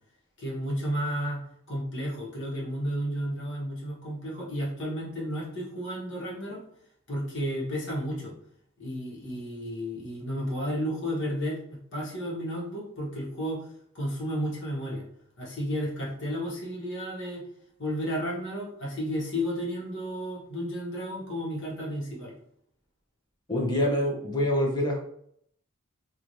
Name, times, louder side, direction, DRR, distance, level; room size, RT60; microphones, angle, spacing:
voice 1, 0.4-1.4 1.7-6.6 7.1-8.3 8.8-11.6 11.9-13.7 13.9-15.0 15.4-17.4 17.8-22.3, equal, 60° left, -3 dB, 1.2 m, -32 dB
voice 2, 23.5-25.0, left 1 dB, 20° left, -2 dB, 0.7 m, -25 dB
3.1 x 2.5 x 2.7 m, 0.69 s
head